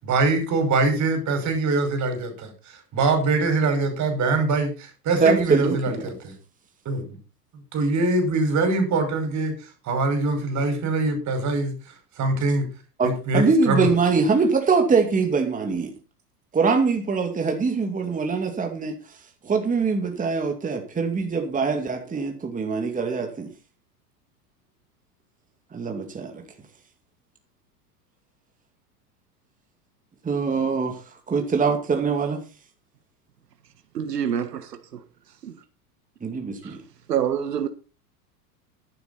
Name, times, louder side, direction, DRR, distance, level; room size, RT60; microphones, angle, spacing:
voice 1, 0.0-6.3 6.9-7.2 7.7-9.5 9.8-11.7 12.2-12.7 13.0-13.9, right 3 dB, 35° right, 5.6 m, -23 dB
voice 2, 5.2-6.1 13.0-15.9 16.5-18.9 19.4-23.5 25.7-26.4 30.2-31.0 31.3-32.4 36.2-36.8, right 4 dB, 15° right, 2.4 m, -23 dB
voice 3, 33.9-35.0 35.4-35.6 36.6-36.8 37.1-37.7, right 9 dB, 85° right, 1.5 m, -27 dB
12.0 x 11.0 x 4.1 m
hypercardioid pair, 100°, 47 cm